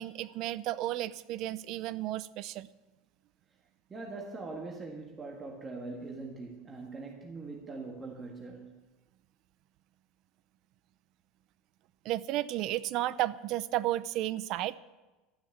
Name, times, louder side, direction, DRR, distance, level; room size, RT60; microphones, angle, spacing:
voice 1, 0.0-2.7 12.0-14.8, right 14 dB, 50° right, 0.6 m, -33 dB
voice 2, 3.9-8.8, right 3 dB, 20° right, 1.8 m, -42 dB
12.5 x 12.5 x 7.3 m
supercardioid pair, 150°, 0 cm